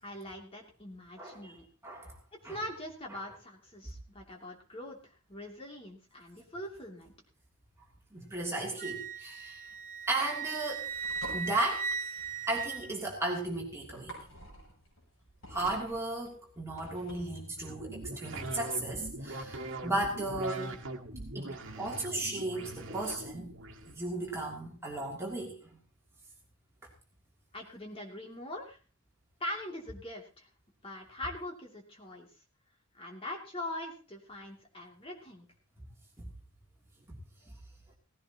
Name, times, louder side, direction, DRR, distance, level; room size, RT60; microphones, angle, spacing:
voice 1, 0.0-1.6 2.4-7.1 27.5-28.8 29.4-30.5 30.8-32.3 33.0-35.5, left 1 dB, 25° left, 0 dB, 2.8 m, -42 dB
voice 2, 1.2-1.5 1.8-2.1 2.4-2.6 8.1-9.6 10.1-10.9 11.3-11.9 12.5-14.1 15.5-20.8 21.3-23.5 23.9-25.5 36.2-36.3, right 2 dB, 10° right, -3 dB, 3.0 m, -35 dB
Wind instrument woodwind instrument, 8.8-13.4, right 5 dB, 40° right, 0.7 m, -38 dB
sound 1, 10.6-17.4, right 1 dB, 70° left, 7.7 m, -49 dB
sound 2, 17.6-23.9, right 2 dB, 60° right, 1.8 m, -42 dB
18.0 x 15.5 x 3.0 m, 0.34 s
head